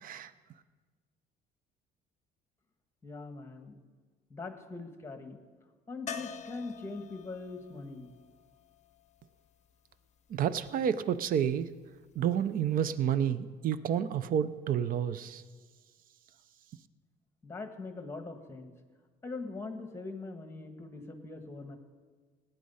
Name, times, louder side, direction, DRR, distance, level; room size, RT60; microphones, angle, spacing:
voice 1, 3.0-3.8 4.3-5.4 5.9-8.2 17.4-18.7 19.2-21.8, left 3 dB, 15° left, 6 dB, 1.6 m, -42 dB
sound 1, 6.1-9.9 12.6-12.7 12.9-13.0, left 7 dB, 45° left, 0.7 m, -46 dB
voice 2, 10.3-11.7 12.2-15.4, right 9 dB, 55° right, 15 dB, 0.7 m, -30 dB
17.0 x 9.2 x 5.6 m, 1.5 s
cardioid pair, 110°, 17 cm